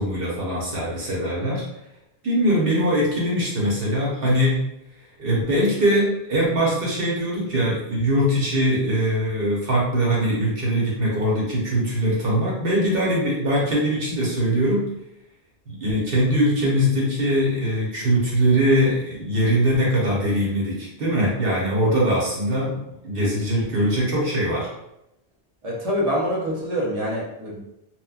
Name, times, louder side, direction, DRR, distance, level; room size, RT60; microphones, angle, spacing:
voice 1, 0.0-1.6 2.2-4.6 5.2-14.9 15.7-24.7, equal, 60° right, -5 dB, 1.1 m, -22 dB
voice 2, 25.6-27.6, equal, 40° right, -3 dB, 0.7 m, -25 dB
2.9 x 2.2 x 2.3 m, 0.84 s
omnidirectional pair, 1.1 m